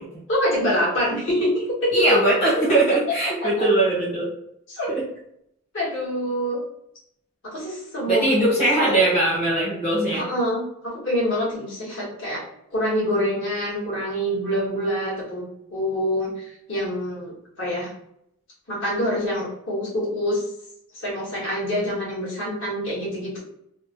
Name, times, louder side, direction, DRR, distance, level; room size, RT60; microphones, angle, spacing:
voice 1, 0.3-2.2 4.7-4.9 5.7-6.6 7.4-9.1 10.1-12.4 12.7-15.4 15.7-17.9 18.7-20.4 20.9-23.4, equal, 60° left, -6 dB, 1.2 m, -25 dB
voice 2, 1.9-4.3 4.9-5.0 8.1-10.2, right 2 dB, 25° left, -7 dB, 0.9 m, -20 dB
2.8 x 2.0 x 2.8 m, 0.75 s
head